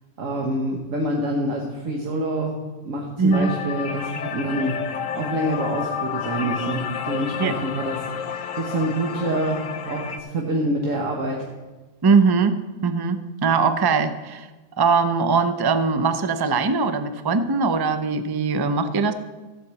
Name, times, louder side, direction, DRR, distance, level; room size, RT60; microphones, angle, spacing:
voice 1, 0.2-2.6 2.8-11.5, right 1 dB, 85° right, -1 dB, 1.6 m, -26 dB
voice 2, 3.2-3.5 7.4-7.5 12.0-14.5 14.8-19.1, right 4 dB, 30° right, 10 dB, 0.4 m, -21 dB
sound 1, 3.3-10.2, left 7 dB, 80° left, 1.1 m, -30 dB
15.0 x 5.3 x 7.4 m, 1.2 s
omnidirectional pair, 1.3 m